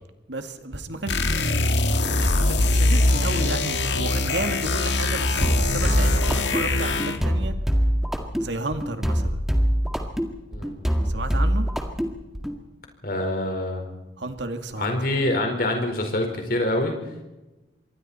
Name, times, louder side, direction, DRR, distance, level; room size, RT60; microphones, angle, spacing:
voice 1, 0.3-1.7 1.9-7.5 8.4-9.4 11.0-11.7 14.2-15.0, right 2 dB, 75° right, 7 dB, 2.1 m, -32 dB
sound 1, 1.1-7.3, left 2 dB, 70° left, 1.9 m, -22 dB
sound 2, 5.4-12.6, equal, ahead, 1.9 m, -24 dB
voice 2, 10.5-10.9 13.0-13.9 14.8-16.9, left 1 dB, 50° left, 3 dB, 4.8 m, -25 dB
26.5 x 23.0 x 4.4 m, 1.0 s
head